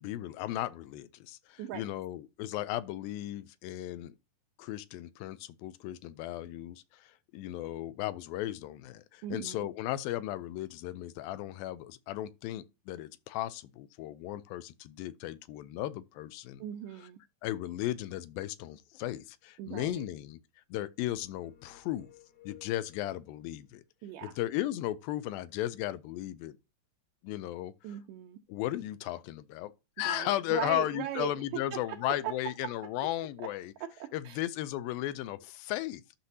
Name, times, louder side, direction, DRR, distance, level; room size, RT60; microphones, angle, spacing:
voice 1, 0.0-4.1 4.6-16.6 17.4-20.4 20.7-22.1 22.5-23.8 24.2-26.6 27.2-27.7 28.5-29.7 30.0-33.7 34.1-36.2, left 14 dB, 85° left, 2.4 m, -36 dB
voice 2, 9.2-9.7 16.6-17.2 19.6-20.1 24.0-24.4 27.8-28.4 30.1-32.9 33.4-33.5 33.8-34.4, right 11 dB, 80° right, 2.1 m, -39 dB
sound 1, 21.0-23.4, left 11 dB, 60° left, 2.1 m, -58 dB
12.0 x 6.0 x 2.7 m
omnidirectional pair, 4.1 m